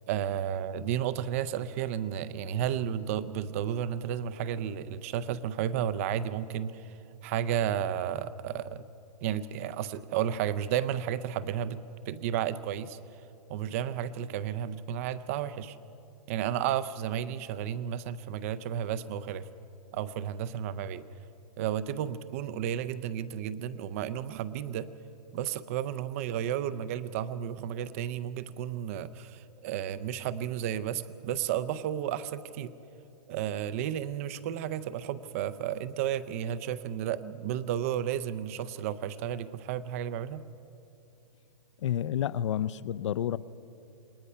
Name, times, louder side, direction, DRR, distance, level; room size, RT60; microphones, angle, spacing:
voice 1, 0.1-8.8 9.2-11.8 12.1-13.0 13.5-15.8 16.3-19.5 19.9-21.1 21.6-24.9 25.3-32.7 33.3-40.4, right 10 dB, 20° right, 15 dB, 0.4 m, -32 dB
voice 2, 41.8-43.4, left 10 dB, 45° left, 18 dB, 0.5 m, -30 dB
28.0 x 21.0 x 5.6 m, 2.8 s
hypercardioid pair, 165°, 21 cm